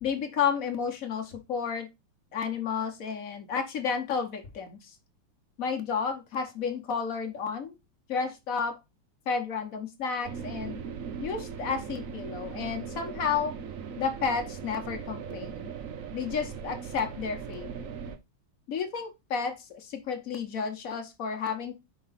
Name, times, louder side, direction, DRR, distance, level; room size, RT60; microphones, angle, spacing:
voice 1, 0.0-1.9 2.3-4.9 5.6-7.7 8.1-8.8 9.3-10.8 11.2-13.5 14.0-15.7 16.1-17.7 18.7-21.7, left 6 dB, 50° left, 5 dB, 1.2 m, -31 dB
sound 1, 10.2-18.2, right 6 dB, 80° right, 0.7 m, -39 dB
5.3 x 4.8 x 4.0 m, 0.23 s
omnidirectional pair, 2.4 m